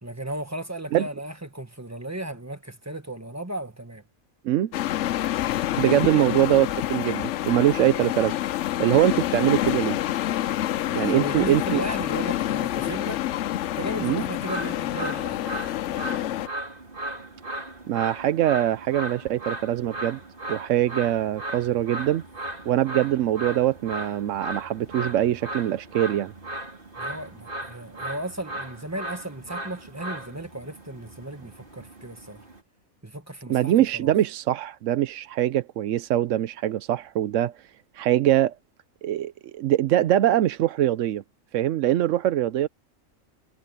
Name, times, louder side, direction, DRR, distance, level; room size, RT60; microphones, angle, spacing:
voice 1, 0.0-4.0 5.7-6.3 10.9-13.2 13.8-15.5 27.0-32.5 33.0-34.1, right 1 dB, 10° right, 1.6 m, -36 dB
sound 1, 4.7-16.5, left 13 dB, 65° left, 0.8 m, -27 dB
voice 2, 5.8-8.4 8.8-10.0 10.9-11.8 14.0-14.2 17.9-20.2 20.5-22.2 22.7-26.3 33.5-38.6 39.0-41.2 41.5-42.7, right 12 dB, 70° right, 0.9 m, -23 dB
sound 2, 14.4-32.6, right 1 dB, 40° right, 3.9 m, -37 dB
omnidirectional pair, 1.4 m